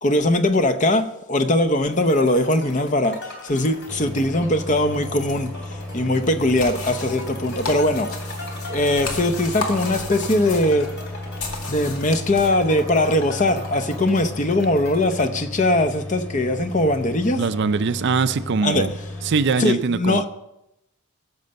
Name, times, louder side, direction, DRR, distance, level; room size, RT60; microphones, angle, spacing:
voice 1, 0.0-3.2 3.4-8.1 8.7-10.9 11.7-17.4 18.6-18.8 19.6-20.3, left 1 dB, 35° left, 0.7 m, -21 dB
sound 1, 1.9-15.3, left 1 dB, 55° left, 3.4 m, -40 dB
sound 2, 3.9-19.5, left 1 dB, 5° left, 1.5 m, -34 dB
sound 3, 6.6-12.5, left 3 dB, 75° left, 2.2 m, -34 dB
voice 2, 17.3-18.9 19.2-20.3, right 4 dB, 50° right, 0.5 m, -22 dB
16.0 x 6.8 x 5.3 m
head